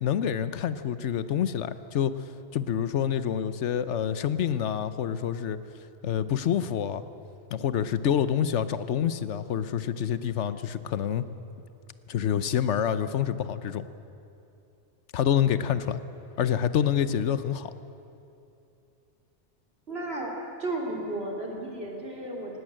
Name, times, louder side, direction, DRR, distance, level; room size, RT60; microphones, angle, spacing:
voice 1, 0.0-2.1 2.5-5.6 6.0-7.0 7.5-11.2 12.1-13.8 15.1-16.0 16.4-17.7, left 9 dB, 85° left, 13 dB, 1.1 m, -27 dB
voice 2, 19.9-22.6, right 1 dB, 60° right, -1 dB, 3.5 m, -34 dB
19.0 x 17.0 x 8.8 m, 2.7 s
omnidirectional pair, 1.2 m